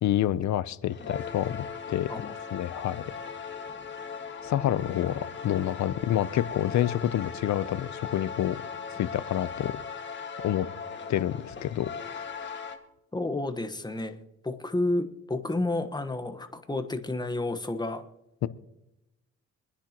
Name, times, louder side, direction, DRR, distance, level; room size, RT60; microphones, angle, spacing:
voice 1, 0.0-3.0 4.4-8.6 8.9-9.7 10.4-10.7 11.1-11.9 12.4-12.5 18.4-18.5, left 12 dB, 65° left, 16 dB, 0.7 m, -28 dB
sound 1, 0.9-12.8, left 6 dB, 40° left, 1.8 m, -39 dB
voice 2, 13.1-14.2 14.4-18.0, left 2 dB, 15° left, 8 dB, 1.2 m, -30 dB
25.0 x 9.9 x 3.0 m, 0.89 s
cardioid pair, 90°, 30 cm